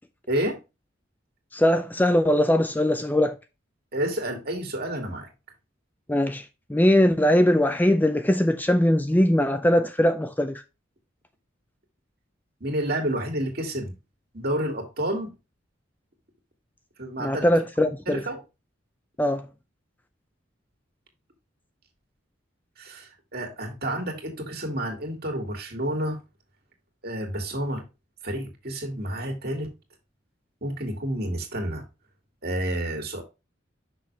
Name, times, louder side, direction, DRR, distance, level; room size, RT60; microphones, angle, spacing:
voice 1, 0.3-0.6 3.9-5.3 12.6-13.9 14.3-15.3 17.0-17.5 18.1-18.4 22.8-26.2 27.0-27.8 28.2-29.7 30.6-31.8 32.4-33.2, right 1 dB, 50° right, 2.2 m, -29 dB
voice 2, 1.5-3.4 6.1-10.6 17.2-18.2 19.2-19.5, left 1 dB, 10° left, 0.4 m, -21 dB
6.2 x 6.0 x 3.1 m
head